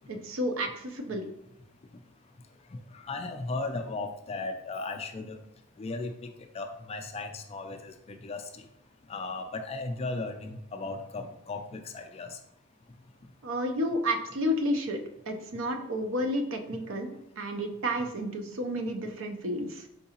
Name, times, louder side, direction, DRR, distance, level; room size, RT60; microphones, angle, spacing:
voice 1, 0.1-1.3 13.4-15.0 15.3-19.9, equal, 65° right, 5 dB, 0.6 m, -31 dB
voice 2, 2.9-5.4 5.8-6.1 6.5-8.4 9.1-12.3, left 3 dB, 30° left, 5 dB, 0.3 m, -36 dB
4.5 x 3.7 x 2.8 m, 0.79 s
head